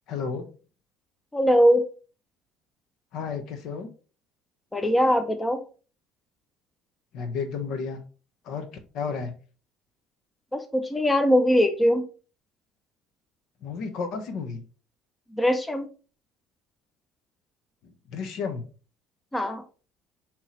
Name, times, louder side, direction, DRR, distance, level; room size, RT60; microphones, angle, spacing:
voice 1, 0.1-0.5 3.1-3.9 7.1-8.0 8.4-8.7 8.9-9.3 13.6-14.6 17.8-18.6, left 5 dB, 65° left, 8 dB, 0.8 m, -32 dB
voice 2, 1.3-1.8 4.7-5.6 10.5-12.0 15.3-15.9 19.3-19.6, equal, 10° left, 8 dB, 0.6 m, -21 dB
5.4 x 3.0 x 3.1 m, 0.37 s
supercardioid pair, 80°, 0 cm